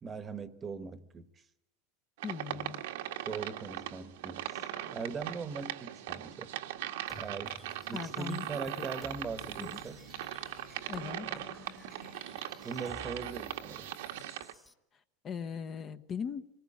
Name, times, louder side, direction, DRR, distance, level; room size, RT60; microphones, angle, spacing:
voice 1, 0.0-1.3 2.5-2.7 3.2-6.5 7.2-7.6 7.9-10.0 11.2-11.5 12.6-13.9, right 5 dB, 20° right, 1.2 m, -41 dB
voice 2, 2.2-2.8 7.9-8.5 8.8-8.9 9.6-9.8 10.9-11.3 15.2-16.5, left 7 dB, 25° left, 0.9 m, -39 dB
sound 1, 2.2-14.5, right 12 dB, 80° right, 1.6 m, -40 dB
sound 2, 7.1-14.7, left 2 dB, 5° left, 1.3 m, -53 dB
26.5 x 19.5 x 8.7 m
supercardioid pair, 150°, 0 cm